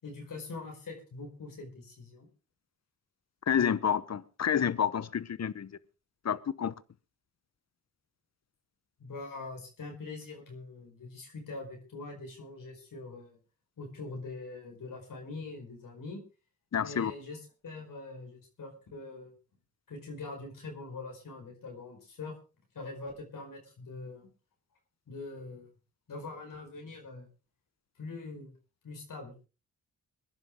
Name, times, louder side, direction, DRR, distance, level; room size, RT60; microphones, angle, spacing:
voice 1, 0.0-2.3 9.0-13.4 13.8-16.2 16.8-19.3 19.9-22.3 22.7-24.3 25.1-25.7 26.1-27.3 28.0-28.5 28.8-29.5, left 3 dB, 70° left, 4.9 m, -43 dB
voice 2, 3.5-5.7 6.2-6.7 16.7-17.1, left 8 dB, 50° left, 1.0 m, -29 dB
21.5 x 10.5 x 3.7 m
cardioid pair, 60°, 34 cm